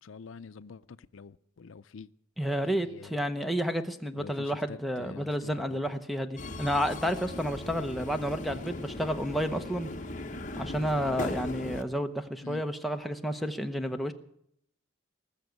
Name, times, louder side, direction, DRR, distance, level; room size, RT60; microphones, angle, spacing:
voice 1, 0.0-2.1 2.6-3.1 4.1-6.0 12.4-12.6, left 5 dB, 80° left, 0.5 m, -47 dB
voice 2, 2.4-9.9 10.6-14.1, equal, ahead, 0.8 m, -31 dB
Subway metro underground, 6.4-11.8, left 2 dB, 40° left, 1.1 m, -38 dB
19.5 x 7.1 x 9.2 m
head